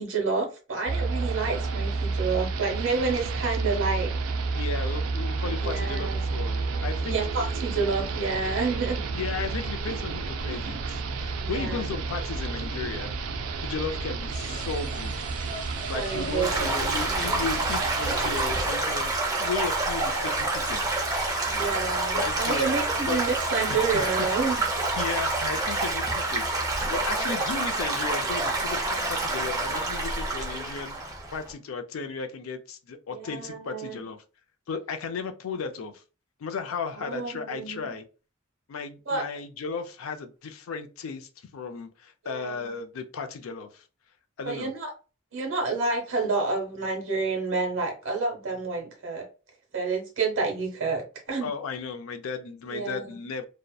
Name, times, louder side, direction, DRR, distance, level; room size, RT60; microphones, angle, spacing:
voice 1, 0.0-4.1 5.6-6.2 7.0-9.0 11.4-11.8 15.9-17.2 21.5-24.6 27.1-27.4 33.1-34.0 36.9-37.9 39.1-39.2 42.2-42.7 44.4-44.9 45.3-49.3 49.7-51.5 52.6-53.0, right 4 dB, 65° right, 0.9 m, -29 dB
sound 1, 0.9-18.6, right 4 dB, 90° right, 0.4 m, -31 dB
voice 2, 4.5-7.2 9.1-13.2 13.6-15.3 15.9-20.9 22.1-22.7 23.1-23.2 23.7-24.3 25.0-31.0 31.3-34.2 34.7-36.0 36.4-38.0 38.7-43.8 44.4-44.7 51.4-53.4, left 5 dB, 80° left, 0.4 m, -35 dB
sound 2, 14.3-26.0, equal, 20° left, 0.9 m, -41 dB
Stream / Gurgling / Trickle dribble, 16.4-31.5, right 2 dB, 15° right, 0.5 m, -28 dB
2.6 x 2.1 x 2.2 m
head